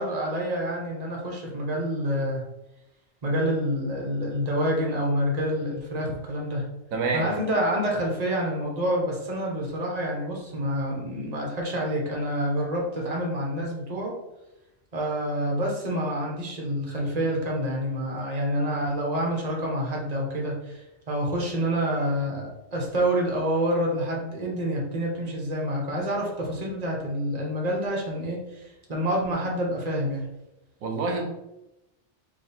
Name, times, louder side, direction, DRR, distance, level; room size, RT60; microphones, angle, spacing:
voice 1, 0.0-2.4 3.2-6.6 7.1-14.2 14.9-30.3, equal, 35° right, -1 dB, 1.0 m, -27 dB
voice 2, 6.9-7.3 30.8-31.3, right 4 dB, 85° right, 2 dB, 1.2 m, -26 dB
3.5 x 3.1 x 4.3 m, 0.94 s
omnidirectional pair, 1.4 m